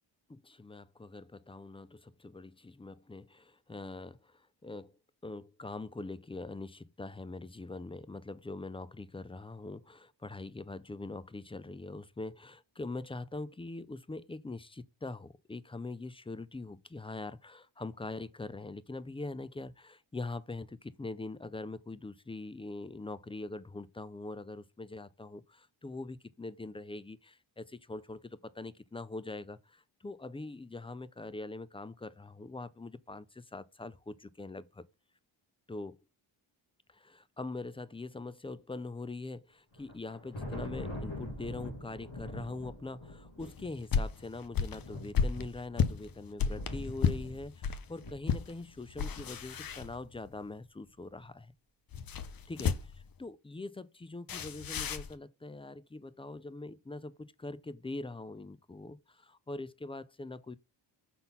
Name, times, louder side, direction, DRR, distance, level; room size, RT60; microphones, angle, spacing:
voice 1, 0.3-4.9 5.2-34.8 35.7-36.0 36.9-51.5 52.5-52.7 53.2-60.6, left 2 dB, 10° left, 0.4 m, -43 dB
Thunder, 39.7-49.2, left 1 dB, 70° left, 3.2 m, -44 dB
sound 1, 43.4-47.8 48.3-48.5 48.9-50.4 51.9-53.1 54.3-55.1, left 6 dB, 45° left, 0.7 m, -32 dB
5.9 x 4.0 x 5.4 m
cardioid pair, 75°, 48 cm